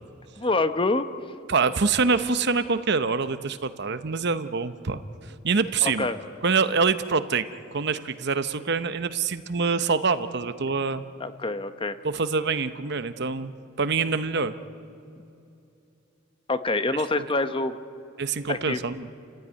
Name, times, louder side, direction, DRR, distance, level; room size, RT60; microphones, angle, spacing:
voice 1, 0.4-1.1 5.8-6.2 11.2-12.0 16.5-17.8 18.5-18.8, left 2 dB, 25° left, 10 dB, 0.8 m, -26 dB
voice 2, 1.5-5.0 5.4-6.1 6.4-7.5 7.7-11.1 12.0-14.5 16.9-17.3 18.2-19.1, right 4 dB, 55° right, 12 dB, 0.8 m, -25 dB
30.0 x 15.5 x 9.7 m, 2.7 s
head